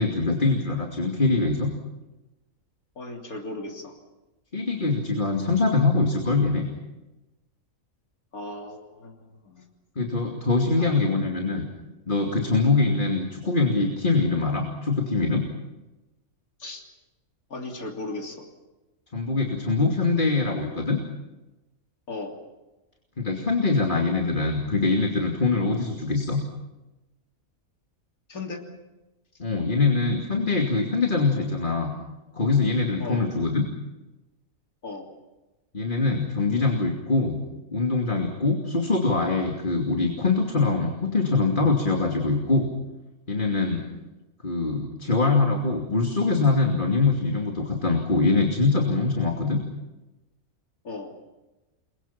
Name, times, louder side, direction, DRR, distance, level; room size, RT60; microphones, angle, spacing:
voice 1, 0.0-1.7 4.5-6.7 10.0-11.6 12.1-15.5 19.1-21.0 23.2-26.4 29.4-31.9 32.3-33.6 35.7-37.4 37.7-42.7 43.3-43.8 44.4-49.6, left 3 dB, 35° left, 1 dB, 2.9 m, -23 dB
voice 2, 3.0-4.0 8.3-9.6 10.8-11.1 12.6-12.8 16.6-16.8 17.5-18.5 22.1-22.4 25.9-26.0 28.3-28.6 33.0-33.3 34.8-35.1 43.7-43.9 50.8-51.2, left 2 dB, 90° left, 1 dB, 3.7 m, -37 dB
30.0 x 23.0 x 5.9 m, 1.0 s
omnidirectional pair, 1.5 m